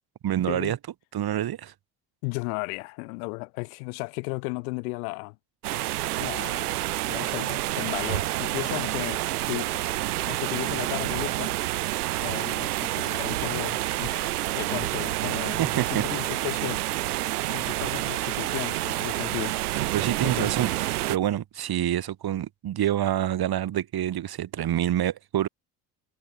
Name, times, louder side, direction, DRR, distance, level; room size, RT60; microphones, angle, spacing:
voice 1, 0.2-0.8 1.1-1.7 15.6-16.0 19.9-20.7 21.1-25.5, right 11 dB, 55° right, 3.7 m, -27 dB
voice 2, 2.2-5.4 6.2-6.8 7.1-11.5 12.2-16.8 17.5-19.6 20.2-20.6, left 30 dB, 80° left, 4.1 m, -35 dB
sound 1, 5.6-21.2, right 16 dB, 85° right, 3.8 m, -28 dB
hypercardioid pair, 60°, 44 cm